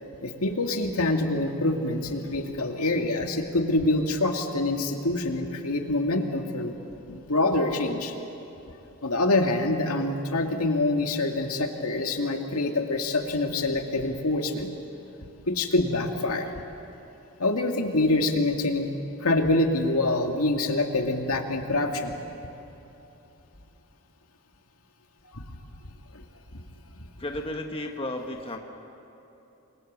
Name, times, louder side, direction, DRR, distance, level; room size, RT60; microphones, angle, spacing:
voice 1, 0.2-6.7 7.1-8.1 9.0-14.7 15.5-16.5 17.4-18.9 19.2-22.1 25.3-25.4 26.1-26.2 26.5-26.6, left 2 dB, 80° left, 3 dB, 2.2 m, -25 dB
voice 2, 27.2-28.6, left 1 dB, 25° left, 3 dB, 1.4 m, -33 dB
28.5 x 23.5 x 7.5 m, 3.0 s
head